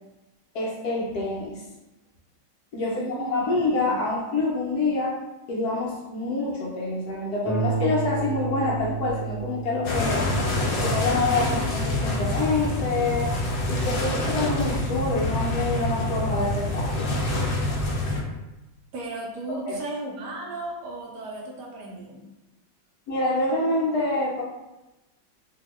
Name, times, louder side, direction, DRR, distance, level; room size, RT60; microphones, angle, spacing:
voice 1, 0.5-1.6 2.7-5.1 5.5-10.2 10.8-13.3 13.7-17.1 19.6-19.8 23.1-24.4, left 2 dB, 70° left, -4 dB, 1.0 m, -26 dB
voice 2, 2.8-3.5 18.9-22.3, right 3 dB, 70° right, -1 dB, 1.1 m, -35 dB
Harp, 7.4-16.6 17.5-17.6 18.0-18.1, right 5 dB, 40° left, 1.0 m, -34 dB
sound 1, 9.8-18.2, left 1 dB, 85° left, 1.4 m, -26 dB
2.9 x 2.7 x 3.0 m, 1.0 s
omnidirectional pair, 2.0 m